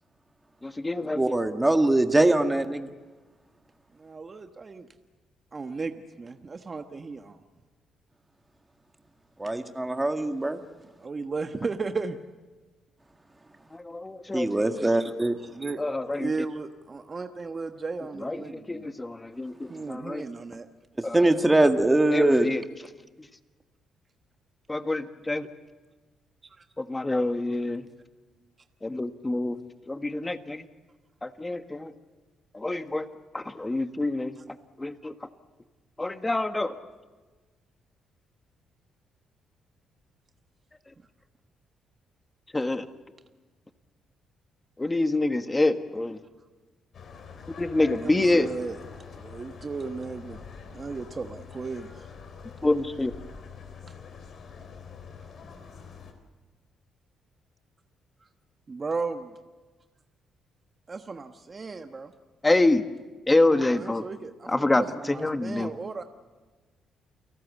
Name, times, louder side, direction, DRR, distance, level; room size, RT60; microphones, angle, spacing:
voice 1, 0.6-1.2 13.7-14.9 15.8-16.3 18.2-20.2 21.0-21.2 22.1-22.6 24.7-25.5 26.8-27.8 28.8-29.6 29.9-30.7 31.2-31.9 32.5-33.1 33.3-34.3 34.8-35.1 36.0-36.7 42.5-42.9 44.8-46.2 47.6-48.5 52.6-53.1 62.4-62.8 63.3-64.0 64.5-65.7, left 2 dB, 15° left, 8 dB, 1.6 m, -26 dB
voice 2, 1.2-2.9 9.4-10.6 14.3-15.4 21.1-22.5, right 2 dB, 15° right, 6 dB, 1.8 m, -22 dB
voice 3, 3.9-4.9 5.5-7.4 9.4-9.5 11.0-12.2 14.6-15.1 15.4-15.8 16.1-18.9 19.7-20.7 26.4-26.6 34.4-34.5 48.0-50.4 50.7-52.1 58.2-58.3 58.7-59.4 60.9-62.1 63.5-66.0, right 4 dB, 35° right, 6 dB, 1.3 m, -35 dB
sound 1, 46.9-56.1, left 6 dB, 60° left, 4.1 m, -45 dB
29.5 x 18.5 x 8.3 m, 1.3 s
cardioid pair, 90°, 0 cm